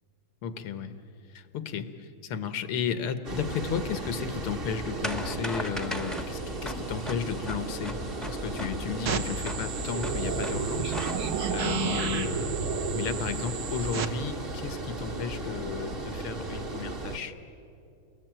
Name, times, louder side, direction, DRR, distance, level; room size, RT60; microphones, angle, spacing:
voice 1, 0.4-1.0 1.3-8.0 8.3-11.0 11.5-12.6 12.9-17.4, left 7 dB, 90° left, 10 dB, 2.1 m, -34 dB
Water, 3.2-17.2, right 2 dB, 30° right, 1.4 m, -36 dB
sound 1, 5.0-11.5, equal, ahead, 0.8 m, -39 dB
sound 2, 9.1-14.1, right 6 dB, 50° right, 1.5 m, -31 dB
29.5 x 21.5 x 9.1 m, 2.7 s
omnidirectional pair, 2.4 m